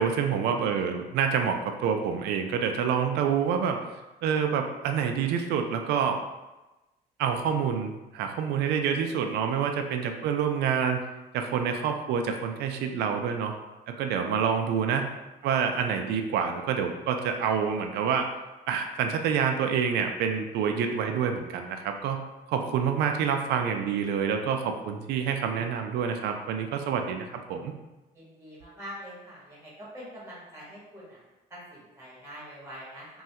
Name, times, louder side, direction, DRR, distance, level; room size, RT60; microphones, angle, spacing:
voice 1, 0.0-3.8 4.2-6.2 7.2-11.0 11.3-13.5 14.0-15.1 15.4-18.3 18.7-22.2 22.5-27.7, right 7 dB, 80° right, 5 dB, 0.4 m, -27 dB
voice 2, 28.1-31.2 31.5-33.2, equal, 15° right, -7 dB, 1.5 m, -44 dB
3.0 x 2.3 x 2.8 m, 1.1 s
cardioid pair, 110°, 17 cm